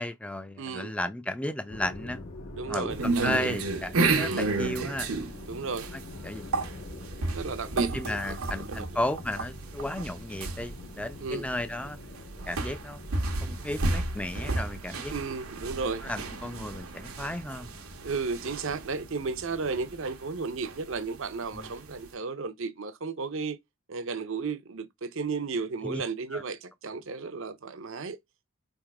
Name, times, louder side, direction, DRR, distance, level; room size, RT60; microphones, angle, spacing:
voice 1, 0.0-2.3 2.7-3.0 3.2-5.1 6.2-6.5 7.9-12.0 12.5-13.0 13.4-15.1 16.0-17.7 21.5-21.7 25.8-26.0 26.3-26.4, left 1 dB, 5° left, 0.4 m, -34 dB
voice 2, 0.6-1.0 2.5-3.5 4.2-4.5 5.4-5.9 7.3-9.0 11.2-11.5 15.1-16.1 18.0-23.6 23.9-28.2, right 4 dB, 65° right, 0.6 m, -34 dB
sound 1, 1.7-20.0, left 2 dB, 80° left, 1.5 m, -46 dB
sound 2, 2.9-22.1, right 3 dB, 90° right, 1.0 m, -32 dB
3.6 x 3.0 x 4.7 m
head